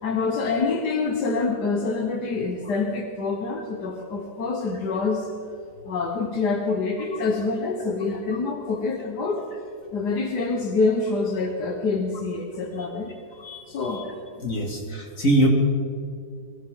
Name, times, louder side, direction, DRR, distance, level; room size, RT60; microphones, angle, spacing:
voice 1, 0.0-5.3 5.9-9.4 9.9-13.1 13.7-14.1, left 4 dB, 85° left, 2 dB, 1.9 m, -26 dB
voice 2, 14.4-15.5, right 1 dB, 50° left, -1 dB, 3.0 m, -23 dB
22.5 x 16.0 x 3.8 m, 2.3 s
omnidirectional pair, 1.7 m